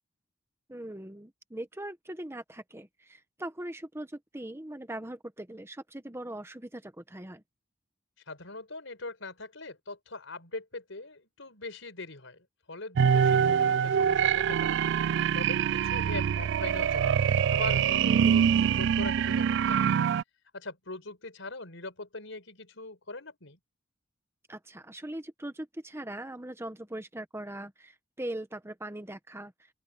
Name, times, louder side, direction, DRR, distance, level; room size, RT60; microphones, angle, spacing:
voice 1, 0.7-7.4 18.0-18.2 24.5-29.5, right 1 dB, 15° right, 1.1 m, -40 dB
voice 2, 8.3-14.8 15.3-17.2 17.5-20.0 20.5-23.6, left 2 dB, 75° left, 5.3 m, -41 dB
sound 1, 13.0-20.2, right 8 dB, 60° right, 0.3 m, -24 dB
open air
head